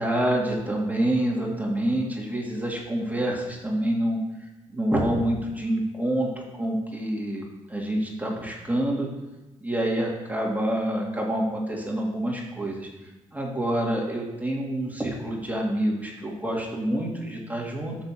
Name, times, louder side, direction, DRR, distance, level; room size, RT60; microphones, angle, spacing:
voice 1, 0.0-4.2 4.7-9.1 9.6-18.0, right 1 dB, 10° right, -2 dB, 2.3 m, -27 dB
6.4 x 6.0 x 4.9 m, 1.1 s
figure-of-eight pair, 40°, 17 cm